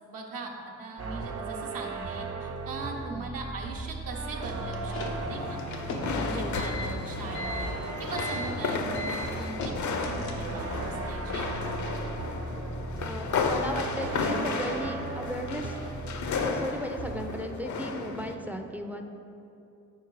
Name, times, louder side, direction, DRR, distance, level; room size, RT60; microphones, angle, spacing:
voice 1, 0.1-5.6 6.0-7.7 8.0-11.7, right 3 dB, 70° right, 0 dB, 0.9 m, -40 dB
sound 1, 1.0-16.7 17.0-17.4, right 3 dB, 45° right, 0.6 m, -36 dB
sound 2, 4.5-10.7, left 2 dB, 90° left, 0.8 m, -38 dB
sound 3, 5.0-18.3, left 4 dB, 55° left, 0.6 m, -34 dB
voice 2, 13.0-15.8 16.4-19.1, equal, 5° right, 5 dB, 0.4 m, -36 dB
4.7 x 4.4 x 4.7 m, 2.8 s
supercardioid pair, 50°, 35 cm